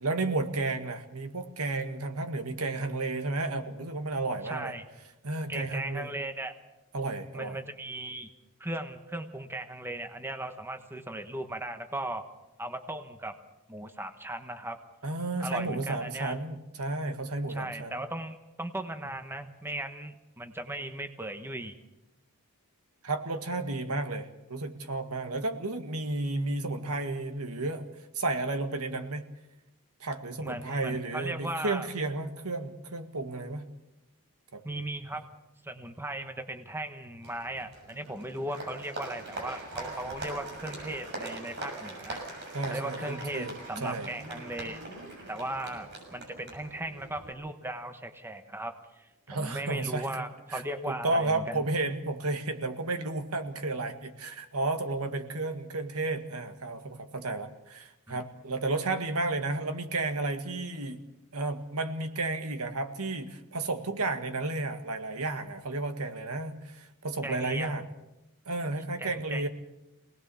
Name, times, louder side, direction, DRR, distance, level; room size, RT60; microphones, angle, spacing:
voice 1, 0.0-4.7 5.2-6.1 6.9-7.6 15.0-18.0 23.0-27.9 28.1-29.2 30.0-33.7 34.5-34.6 42.5-44.1 49.3-50.1 50.5-61.0 61.3-67.8 68.5-69.5, right 2 dB, 80° right, 7 dB, 1.9 m, -32 dB
voice 2, 4.4-4.8 5.5-6.5 7.3-8.3 8.6-12.3 12.6-13.4 13.7-14.8 15.4-16.3 17.5-21.7 30.4-31.9 34.6-35.2 35.6-44.8 45.3-51.6 58.1-58.2 67.2-67.7 69.0-69.5, right 1 dB, 10° right, 7 dB, 1.2 m, -37 dB
Applause, 37.2-47.3, right 2 dB, 50° right, 6.7 m, -42 dB
24.5 x 19.0 x 7.1 m, 0.95 s
head